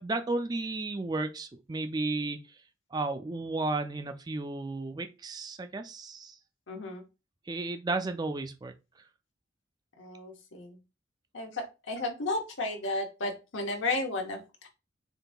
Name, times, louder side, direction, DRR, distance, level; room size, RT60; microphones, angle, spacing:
voice 1, 0.0-2.4 2.9-6.4 7.5-8.7, right 2 dB, 20° right, 0.3 m, -33 dB
voice 2, 6.7-7.0 10.0-10.8 11.3-14.7, left 2 dB, 75° left, 1.0 m, -33 dB
6.6 x 2.7 x 2.2 m
head